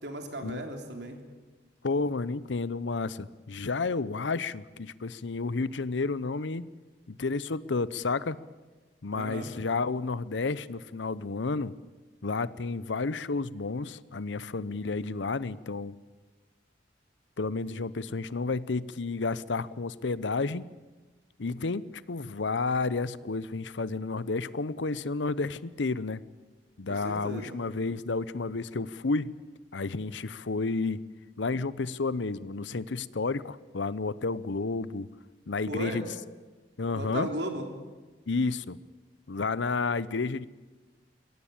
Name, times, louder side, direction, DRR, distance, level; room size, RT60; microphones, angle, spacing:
voice 1, 0.0-1.2 9.1-9.5 26.9-27.6 35.7-36.1 36.9-37.7, right 1 dB, 65° right, 4 dB, 3.6 m, -36 dB
voice 2, 1.8-6.7 7.1-8.4 9.0-11.7 12.2-16.0 17.4-20.7 21.4-26.2 26.8-29.3 29.7-31.0 31.4-35.1 35.5-36.1 36.8-37.3 38.3-38.8 39.3-40.5, left 3 dB, 85° left, 18 dB, 0.8 m, -31 dB
23.0 x 17.5 x 8.8 m, 1.3 s
head